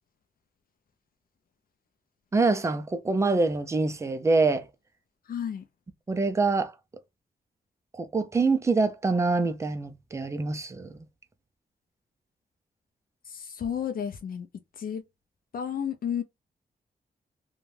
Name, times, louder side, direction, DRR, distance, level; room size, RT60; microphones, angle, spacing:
voice 1, 2.3-4.7 6.1-6.7 8.0-10.9, right 3 dB, 15° right, 0.3 m, -25 dB
voice 2, 5.3-5.6 13.3-14.5 14.8-15.0 15.5-16.2, left 8 dB, 60° left, 0.4 m, -32 dB
2.5 x 2.2 x 3.1 m
wide cardioid pair, 180°, 17 cm